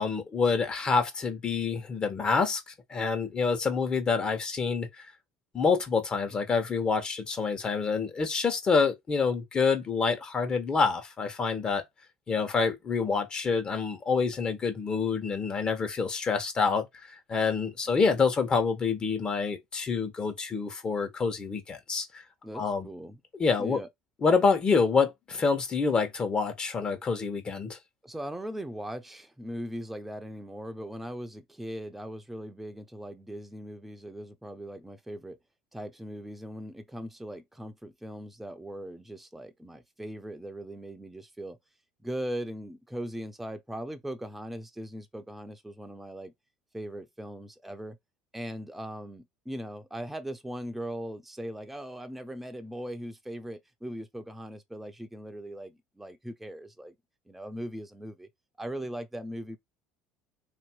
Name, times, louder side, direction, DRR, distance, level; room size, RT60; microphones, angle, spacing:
voice 1, 0.0-5.0 5.5-11.8 12.3-22.2 22.5-22.9 23.4-23.8 24.2-27.8, left 5 dB, 30° left, 1.6 m, -27 dB
voice 2, 22.4-23.2 23.6-23.9 28.0-35.4 35.7-41.6 42.0-46.3 46.7-48.0 48.3-56.9 57.3-58.3 58.6-59.6, equal, 5° right, 0.9 m, -39 dB
3.2 x 3.0 x 4.6 m
hypercardioid pair, 85°, 3 cm